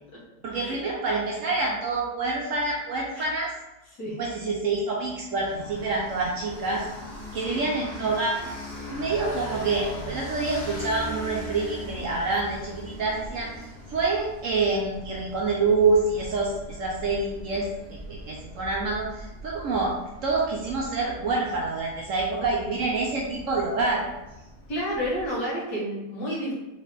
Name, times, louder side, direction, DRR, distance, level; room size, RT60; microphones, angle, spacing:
voice 1, 0.4-3.5 4.2-6.8 7.3-8.5 8.9-19.9 20.2-24.1, right 3 dB, 65° right, -2 dB, 0.8 m, -27 dB
sound 1, 5.4-25.3, equal, 45° left, 1.1 m, -41 dB
voice 2, 24.7-26.5, equal, 70° left, -8 dB, 2.1 m, -30 dB
4.5 x 3.3 x 3.2 m, 1.0 s
omnidirectional pair, 1.7 m